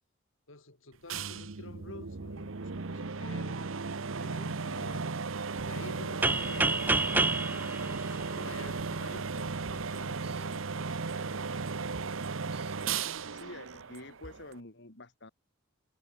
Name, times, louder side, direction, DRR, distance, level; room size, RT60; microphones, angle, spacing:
voice 1, 0.5-3.6 4.2-5.1 5.7-6.9 7.8-11.4, left 2 dB, 75° left, 3.5 m, -49 dB
sound 1, 1.1-14.6, right 4 dB, 75° right, 1.0 m, -36 dB
sound 2, 6.2-9.0, right 2 dB, 10° right, 0.4 m, -29 dB
sound 3, 9.4-14.5, right 3 dB, 55° right, 5.4 m, -53 dB
voice 2, 13.3-15.3, left 2 dB, 60° left, 3.1 m, -47 dB
head